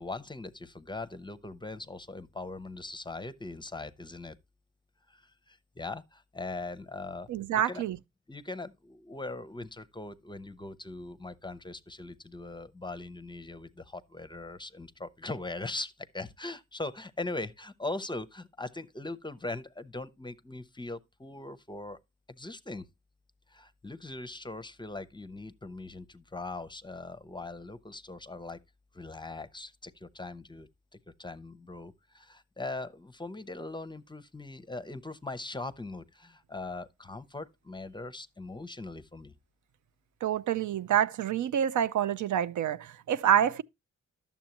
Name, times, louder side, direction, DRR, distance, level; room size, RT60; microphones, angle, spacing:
voice 1, 0.0-4.4 5.1-7.3 7.7-7.8 8.3-22.0 22.3-22.9 23.5-28.6 28.9-30.7 31.2-39.3, left 2 dB, 15° left, 0.6 m, -40 dB
voice 2, 7.3-8.0 40.2-43.6, right 10 dB, 80° right, 0.5 m, -27 dB
11.5 x 7.2 x 2.9 m
wide cardioid pair, 105°, 30 cm